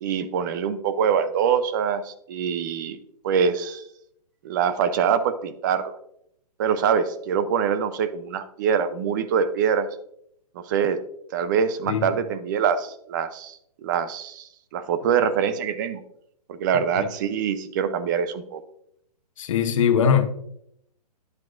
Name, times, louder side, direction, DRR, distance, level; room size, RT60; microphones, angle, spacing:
voice 1, 0.0-3.0 3.2-3.8 4.4-5.9 6.6-9.9 10.7-11.0 11.3-16.0 16.5-18.6, right 7 dB, 30° right, 0.5 m, -24 dB
voice 2, 19.4-20.3, left 7 dB, 50° left, 0.9 m, -21 dB
9.5 x 7.4 x 2.5 m
hypercardioid pair, 155°, 21 cm